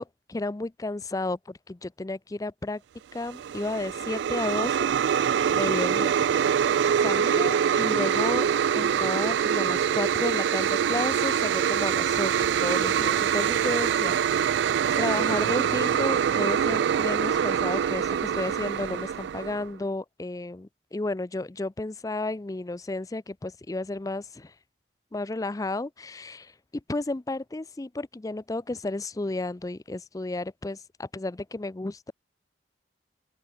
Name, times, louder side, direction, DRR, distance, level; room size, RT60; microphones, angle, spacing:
voice 1, 0.0-2.8 3.1-4.9 5.5-6.2 7.0-8.5 8.7-14.6 15.0-24.5 25.1-26.5 26.9-32.1, left 2 dB, 20° left, 0.4 m, -32 dB
sound 1, 3.2-19.7, right 8 dB, 75° right, 0.3 m, -24 dB
open air
head